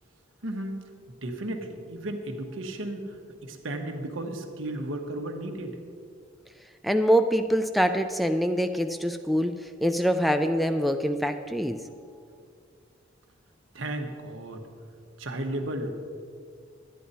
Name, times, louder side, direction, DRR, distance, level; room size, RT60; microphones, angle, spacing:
voice 1, 0.4-0.8 1.2-3.1 3.4-5.8 13.7-14.6 15.2-15.9, right 1 dB, 85° right, 4 dB, 1.1 m, -34 dB
voice 2, 6.8-11.8, equal, ahead, 7 dB, 0.3 m, -24 dB
11.0 x 10.0 x 4.2 m, 2.2 s
head